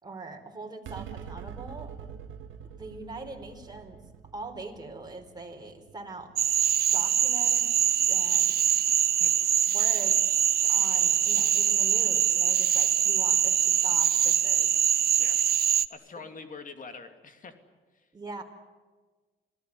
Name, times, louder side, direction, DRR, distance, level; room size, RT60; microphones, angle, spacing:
voice 1, 0.0-1.9 2.8-4.0 4.3-6.3 6.9-7.7 8.1-8.7 9.7-10.2 10.6-14.7 18.1-18.4, right 3 dB, 20° right, 2 dB, 4.4 m, -42 dB
sound 1, 0.8-7.5, right 8 dB, 75° right, 2.0 m, -45 dB
Cricket / Frog, 6.4-15.9, right 9 dB, 50° right, 0.8 m, -23 dB
voice 2, 15.9-17.5 17.9-18.1, left 4 dB, 40° left, 7 dB, 2.8 m, -44 dB
26.5 x 18.0 x 9.8 m, 1.4 s
cardioid pair, 90°, 20 cm